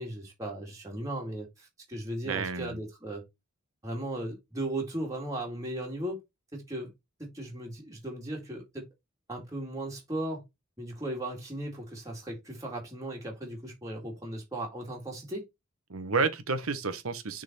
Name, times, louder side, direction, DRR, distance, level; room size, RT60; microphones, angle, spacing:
voice 1, 0.0-3.2 3.8-6.2 6.5-6.9 7.3-8.9 9.3-10.4 10.8-15.4, right 1 dB, 15° right, 2.1 m, -37 dB
voice 2, 2.2-2.8 15.9-17.4, right 4 dB, 85° right, 1.1 m, -30 dB
6.5 x 3.9 x 4.2 m
head